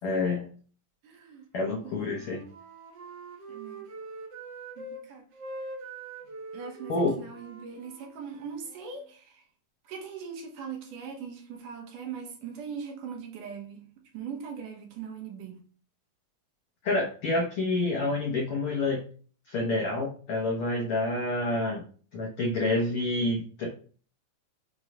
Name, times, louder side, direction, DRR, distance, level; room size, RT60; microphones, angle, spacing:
voice 1, 0.0-0.5 1.5-2.4 6.9-7.2 16.8-19.0 19.5-21.8 22.1-23.7, left 2 dB, 85° left, 0 dB, 1.2 m, -28 dB
voice 2, 1.0-1.5 1.8-2.3 3.5-3.9 4.8-5.2 6.5-9.4 9.9-13.8 14.1-15.6, right 6 dB, 75° right, 2 dB, 2.7 m, -40 dB
Wind instrument woodwind instrument, 1.7-5.0 5.3-9.1, right 3 dB, 60° right, 1.2 m, -43 dB
6.1 x 3.2 x 5.2 m, 0.44 s
omnidirectional pair, 3.8 m